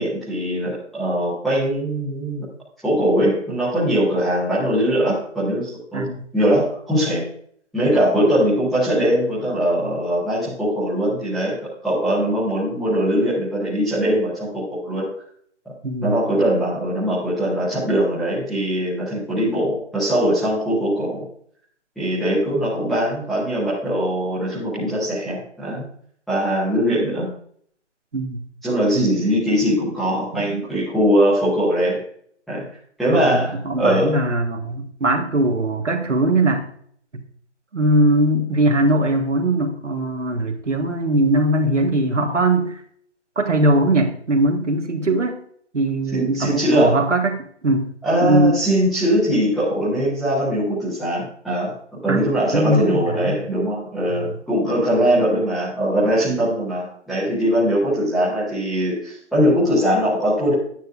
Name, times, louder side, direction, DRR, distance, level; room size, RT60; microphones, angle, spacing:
voice 1, 0.0-2.5 2.8-6.1 6.3-7.3 7.7-15.1 15.6-15.7 16.0-21.2 22.0-25.9 26.3-27.3 28.6-32.0 32.5-32.6 33.0-34.2 46.1-47.0 48.0-51.7 52.0-60.5, equal, ahead, -13 dB, 0.6 m, -21 dB
voice 2, 5.9-6.2 15.8-16.2 28.1-28.5 30.3-30.7 33.1-36.7 37.1-37.2 37.7-42.8 43.3-45.4 45.7-47.9 48.2-48.6 52.1-52.3 52.5-53.5 54.1-54.3, right 1 dB, 90° right, 3 dB, 1.5 m, -20 dB
9.2 x 9.0 x 2.4 m, 0.62 s
figure-of-eight pair, 150°, 35 cm